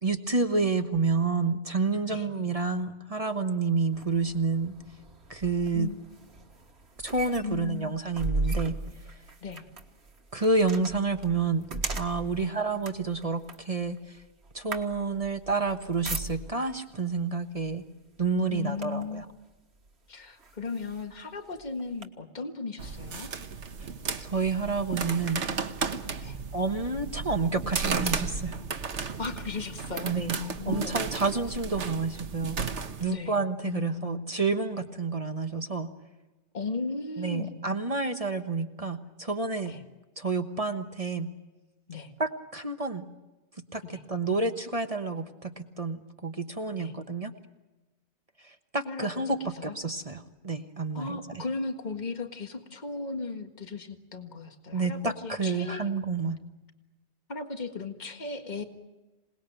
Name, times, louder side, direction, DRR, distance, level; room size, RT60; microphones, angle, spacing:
voice 1, 0.0-4.7 5.3-5.9 7.0-8.8 10.3-11.7 12.0-14.2 14.5-17.8 18.2-19.2 24.2-25.4 26.5-28.6 30.0-30.3 30.6-32.6 33.0-35.9 37.2-39.7 40.2-41.3 42.2-43.0 43.7-47.3 48.4-51.2 54.7-56.4, right 4 dB, 35° right, 8 dB, 1.2 m, -29 dB
sound 1, 3.9-16.8 17.6-17.8 18.2-19.2 19.9-20.0 20.4-22.1, right 3 dB, 70° right, 2.0 m, -38 dB
voice 2, 7.4-8.0 9.4-9.7 12.3-12.5 18.5-19.3 20.1-23.3 26.2-26.4 29.2-31.0 33.0-34.4 36.5-37.7 39.6-39.8 41.9-42.1 43.8-44.0 46.8-46.9 48.9-49.1 49.4-49.8 50.9-55.9 57.3-58.6, left 4 dB, 40° left, 6 dB, 1.9 m, -36 dB
sound 2, 22.8-33.0, right 5 dB, 90° right, 1.6 m, -34 dB
27.5 x 19.5 x 9.1 m, 1.1 s
omnidirectional pair, 1.1 m